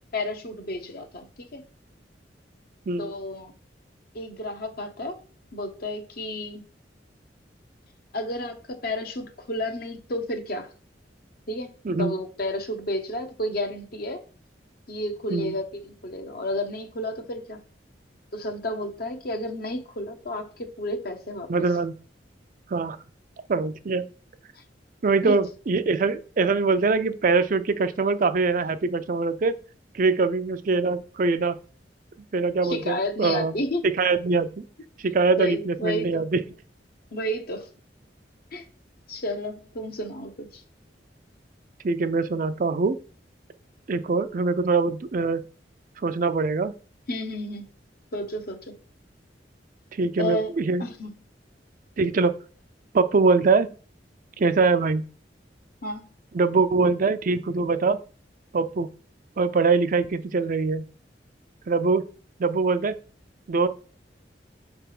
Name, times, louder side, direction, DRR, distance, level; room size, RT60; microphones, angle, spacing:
voice 1, 0.1-1.6 3.0-3.5 4.1-5.2 5.5-6.6 8.1-10.7 11.5-11.7 12.0-14.2 14.9-17.6 18.3-21.5 25.2-25.4 32.6-33.8 35.4-36.2 37.1-37.7 38.5-38.7 39.1-40.6 47.1-47.7 48.1-48.7 50.2-50.5 50.8-51.1 55.8-56.0, left 1 dB, 60° left, 6 dB, 1.1 m, -31 dB
voice 2, 11.8-12.2 15.3-15.5 21.5-21.9 22.7-23.0 23.5-24.1 25.0-29.5 29.9-31.6 32.3-33.5 34.0-34.7 35.0-36.4 41.8-43.0 43.9-45.4 46.0-46.7 49.9-50.8 52.0-52.3 52.9-53.7 54.4-55.0 56.3-58.0 58.5-58.9 59.4-60.8 61.7-62.1 62.4-62.9 63.5-63.7, right 4 dB, 50° right, 11 dB, 0.5 m, -23 dB
5.9 x 3.4 x 5.8 m, 0.38 s
head